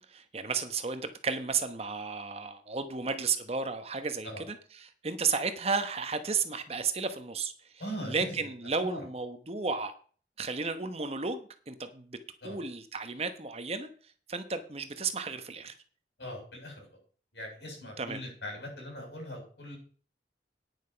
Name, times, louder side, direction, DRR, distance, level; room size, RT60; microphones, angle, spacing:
voice 1, 0.0-7.5 8.1-9.9 10.4-12.2 12.4-13.9 14.3-15.7 18.0-18.2, right 4 dB, 35° right, 9 dB, 1.0 m, -33 dB
voice 2, 7.8-8.4 8.8-9.0 12.4-12.6 16.2-16.8 17.3-19.8, equal, 75° left, 0 dB, 7.7 m, -40 dB
9.9 x 9.1 x 5.7 m, 0.43 s
head